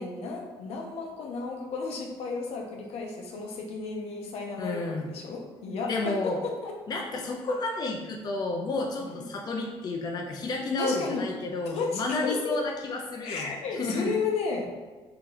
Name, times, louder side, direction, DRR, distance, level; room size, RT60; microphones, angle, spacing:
voice 1, 0.0-6.7 9.0-9.3 10.8-11.3 11.7-12.6 13.2-14.8, left 4 dB, 80° left, 0 dB, 0.7 m, -33 dB
voice 2, 4.6-5.1 5.9-6.4 6.9-14.1, left 2 dB, 40° left, 0 dB, 0.5 m, -31 dB
3.1 x 2.9 x 3.8 m, 1.3 s
cardioid pair, 115°, 10 cm